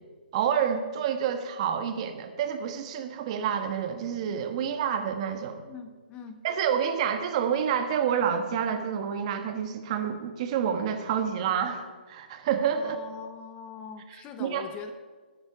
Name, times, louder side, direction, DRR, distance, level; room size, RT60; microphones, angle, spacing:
voice 1, 0.3-5.6 6.4-13.0 14.4-14.6, right 8 dB, 35° right, 6 dB, 1.4 m, -28 dB
voice 2, 5.6-6.4 12.7-14.9, left 6 dB, 20° left, 9 dB, 0.7 m, -42 dB
21.0 x 7.9 x 4.9 m, 1.4 s
hypercardioid pair, 150°, 6 cm